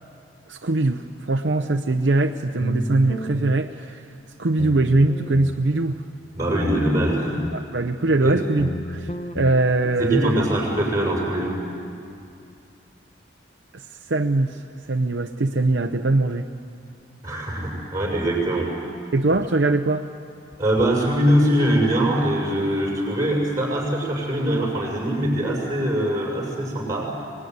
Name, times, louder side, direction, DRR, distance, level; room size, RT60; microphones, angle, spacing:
voice 1, 0.5-4.0 4.4-6.0 7.5-9.1 9.3-10.4 13.7-14.6 14.9-16.5 19.1-20.1, right 2 dB, 70° right, 5 dB, 0.7 m, -22 dB
sound 1, 2.6-3.6 4.6-5.6 6.6-7.6 8.6-9.6, left 1 dB, 30° left, 0.7 m, -31 dB
voice 2, 6.3-7.5 8.2-8.3 10.0-11.6 17.2-18.7 20.6-27.1, right 1 dB, 15° right, -2 dB, 6.4 m, -22 dB
25.0 x 19.5 x 9.5 m, 2.5 s
head